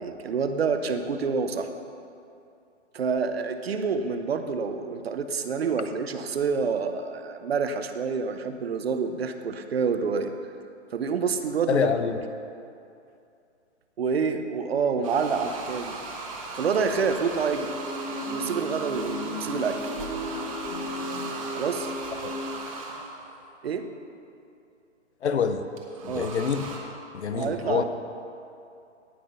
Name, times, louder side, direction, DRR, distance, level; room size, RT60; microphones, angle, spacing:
voice 1, 0.0-1.7 2.9-10.3 10.9-11.9 14.0-16.0 16.6-17.7 18.3-19.8 21.5-21.9 23.6-23.8 26.1-26.3 27.3-27.8, right 5 dB, 55° right, 8 dB, 1.0 m, -27 dB
voice 2, 11.7-12.2 22.2-22.3 25.2-25.6 26.0-26.7 27.1-27.8, left 6 dB, 65° left, 9 dB, 0.9 m, -26 dB
sound 1, 15.0-23.3 25.8-26.8, right 3 dB, 30° right, 1.2 m, -37 dB
sound 2, 17.4-22.6, left 1 dB, 75° right, 3.1 m, -35 dB
17.5 x 6.0 x 5.6 m, 2.6 s
hypercardioid pair, 165°, 36 cm